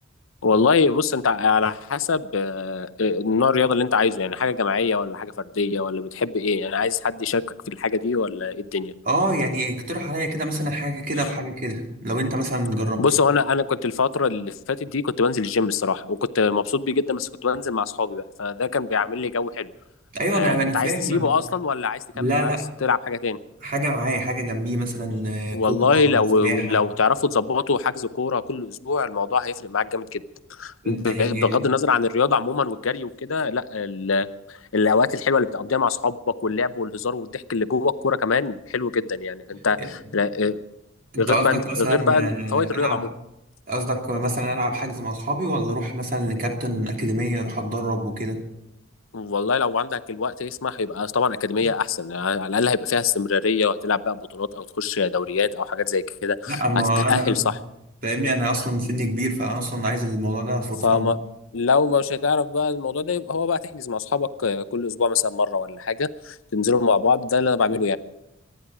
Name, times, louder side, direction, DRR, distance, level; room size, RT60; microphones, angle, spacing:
voice 1, 0.4-8.9 13.0-19.7 20.3-22.6 22.8-23.4 25.5-30.2 30.6-34.3 34.7-40.6 41.2-43.1 49.1-56.6 57.0-57.5 60.8-61.2 61.5-68.0, left 4 dB, 75° left, 13 dB, 0.7 m, -23 dB
voice 2, 9.0-13.0 20.1-21.3 22.1-22.7 23.6-26.8 30.8-31.6 39.8-39.9 41.1-43.0 43.7-48.4 56.5-57.5 58.0-61.1, right 1 dB, 45° right, 2 dB, 2.9 m, -26 dB
25.0 x 10.5 x 4.8 m, 0.86 s
head